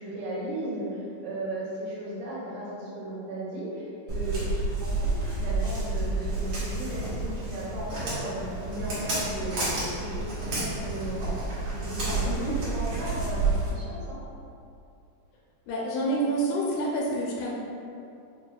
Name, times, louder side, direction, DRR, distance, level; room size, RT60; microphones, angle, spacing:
voice 1, 0.0-11.3 11.6-14.2, right 1 dB, 80° right, -7 dB, 2.4 m, -36 dB
Walk footsteps, 4.1-13.7, right 3 dB, 60° right, 1.7 m, -30 dB
voice 2, 12.2-12.5 15.7-17.5, right 1 dB, 80° left, -4 dB, 1.9 m, -28 dB
6.2 x 2.3 x 2.2 m, 2.5 s
omnidirectional pair, 3.6 m